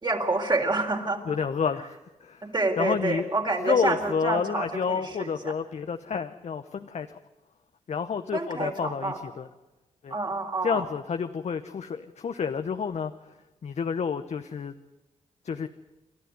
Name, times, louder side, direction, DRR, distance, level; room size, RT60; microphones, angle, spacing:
voice 1, 0.0-1.2 2.4-5.5 8.3-9.2 10.1-10.9, right 2 dB, 35° right, 3 dB, 4.0 m, -28 dB
voice 2, 1.2-2.4 2.8-3.3 3.6-7.2 7.9-9.5 10.0-10.1 10.6-13.1 13.6-14.7 15.4-15.7, left 6 dB, 60° left, 8 dB, 0.9 m, -29 dB
28.0 x 12.5 x 9.5 m, 1.1 s
cardioid pair, 70°, 13 cm